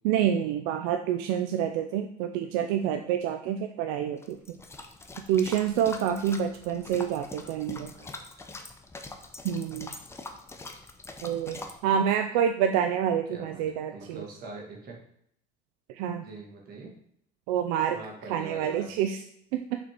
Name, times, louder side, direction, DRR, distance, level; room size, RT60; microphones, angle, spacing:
voice 1, 0.0-4.6 5.3-7.9 9.4-9.9 11.2-14.2 15.9-16.3 17.5-18.0 18.3-19.2 19.5-19.8, right 9 dB, 80° right, 6 dB, 0.5 m, -27 dB
sound 1, 4.2-11.8, left 3 dB, 15° left, 0.7 m, -43 dB
voice 2, 13.3-13.6 13.9-15.0 16.2-16.9 17.9-18.9, right 3 dB, 50° right, 0 dB, 1.9 m, -43 dB
6.2 x 4.1 x 4.5 m, 0.70 s
supercardioid pair, 115°, 20 cm